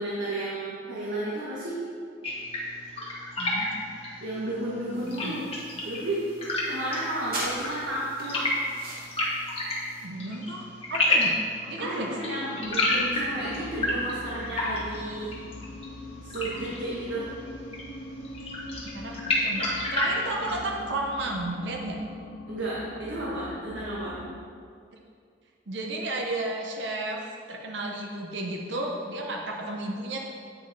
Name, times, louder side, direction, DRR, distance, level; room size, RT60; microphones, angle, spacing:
voice 1, 0.0-1.8 4.2-5.4 5.8-6.3 6.7-8.5 11.8-15.3 16.2-17.3 22.5-24.2 28.7-28.8, right 1 dB, 85° right, -7 dB, 1.3 m, -32 dB
sound 1, 2.2-20.7, left 1 dB, 30° left, 1.4 m, -31 dB
voice 2, 3.4-3.8 5.0-5.4 10.0-10.6 10.9-11.3 11.6-12.1 18.9-22.0 25.7-27.2 27.5-30.2, right 2 dB, 70° right, 0 dB, 0.8 m, -33 dB
sound 2, 4.9-10.0, right 1 dB, 50° right, 1.8 m, -41 dB
sound 3, 12.6-24.4, left 1 dB, 65° left, 0.6 m, -42 dB
8.9 x 5.1 x 4.1 m, 2.3 s
head